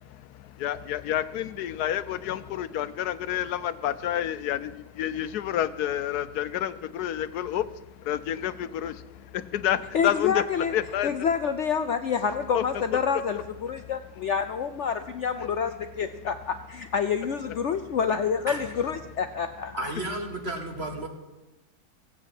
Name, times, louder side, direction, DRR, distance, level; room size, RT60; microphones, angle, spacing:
voice 1, 0.0-10.4 10.7-11.1 12.5-12.6 13.8-13.9, left 11 dB, 80° left, 14 dB, 1.2 m, -29 dB
voice 2, 9.9-10.7 11.0-19.9, left 6 dB, 60° left, 8 dB, 0.8 m, -28 dB
voice 3, 19.8-21.1, right 2 dB, 40° right, 3 dB, 2.2 m, -33 dB
16.5 x 8.4 x 7.6 m, 1.0 s
omnidirectional pair, 1.7 m